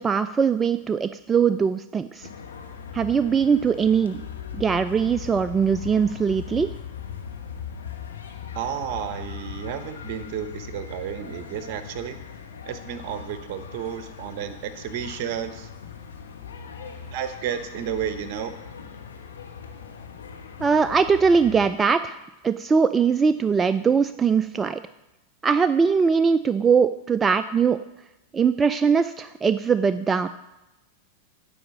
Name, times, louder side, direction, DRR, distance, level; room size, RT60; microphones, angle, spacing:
voice 1, 0.0-2.3 2.9-4.2 4.5-6.7 20.6-22.2 22.4-24.8 25.4-27.8 28.3-30.3, right 6 dB, 20° right, 11 dB, 0.3 m, -21 dB
sound 1, 2.2-21.7, left 7 dB, 80° left, 1.0 m, -39 dB
voice 2, 8.5-12.2 12.6-15.7 17.1-18.5, right 9 dB, 55° right, 11 dB, 1.0 m, -32 dB
9.9 x 4.9 x 7.1 m, 0.99 s
hypercardioid pair, 95°, 0 cm